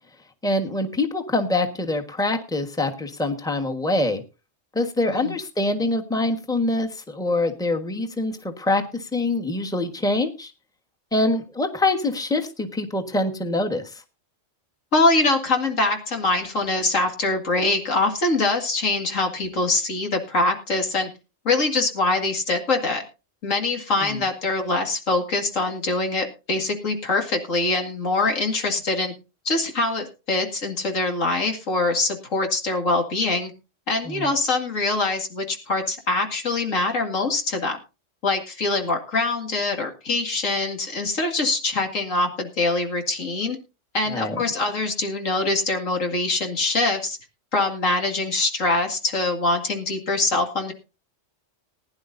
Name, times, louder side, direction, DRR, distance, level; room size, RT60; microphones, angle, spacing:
voice 1, 0.4-4.2 4.7-10.5 11.1-13.8 24.0-24.2 34.1-34.3 44.1-44.4, left 2 dB, 5° left, 4 dB, 1.2 m, -24 dB
voice 2, 14.9-21.1 21.4-23.0 23.4-29.1 29.4-33.5 33.9-37.8 38.2-43.6 43.9-47.2 47.5-50.7, left 2 dB, 85° left, 3 dB, 2.5 m, -23 dB
20.0 x 10.5 x 2.6 m, 0.30 s
omnidirectional pair, 1.3 m